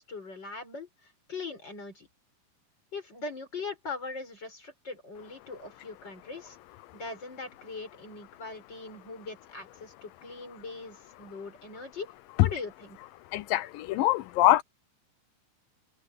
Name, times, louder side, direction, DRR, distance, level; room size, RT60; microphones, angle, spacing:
voice 1, 0.0-2.1 2.9-6.6 6.9-12.1 12.4-13.0, left 3 dB, 30° left, 6.7 m, -41 dB
voice 2, 13.3-14.6, left 15 dB, 80° left, 2.4 m, -24 dB
omnidirectional pair, 4.1 m